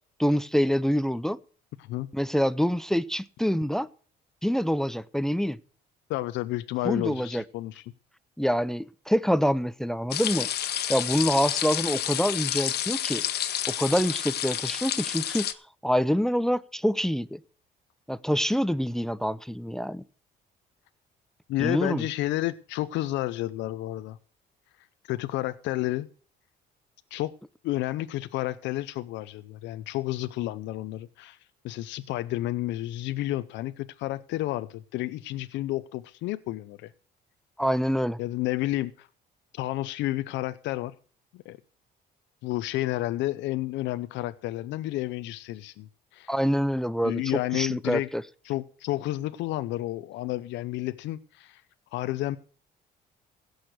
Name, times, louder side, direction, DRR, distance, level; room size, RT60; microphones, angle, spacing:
voice 1, 0.2-1.4 2.1-3.9 4.4-5.6 6.8-7.4 8.4-10.5 10.9-13.2 13.7-15.5 15.8-17.4 18.1-20.0 21.6-22.0 37.6-38.2 46.3-47.2 47.5-48.2, equal, 5° left, 0.6 m, -26 dB
voice 2, 6.1-7.8 21.5-24.2 25.0-26.1 27.1-27.3 27.6-31.4 31.6-36.9 38.2-39.1 39.5-40.9 41.3-41.6 42.4-46.3 47.0-48.1 48.4-51.6 51.9-52.4, left 16 dB, 85° left, 0.6 m, -31 dB
sound 1, 10.1-15.5, left 11 dB, 60° left, 1.2 m, -29 dB
16.5 x 6.5 x 6.5 m
cardioid pair, 95°, 18 cm